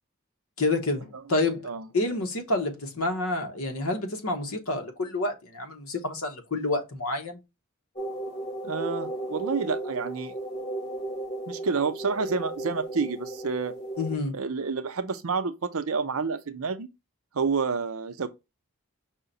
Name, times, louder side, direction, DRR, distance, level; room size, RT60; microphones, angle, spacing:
voice 1, 0.6-7.4 14.0-14.4, left 2 dB, 75° left, 1.0 m, -28 dB
sound 1, 8.0-14.2, right 1 dB, 35° left, 1.5 m, -35 dB
voice 2, 8.6-10.3 11.5-13.8 14.3-16.9 17.3-18.3, right 5 dB, 75° right, 0.6 m, -29 dB
5.6 x 2.2 x 3.8 m
head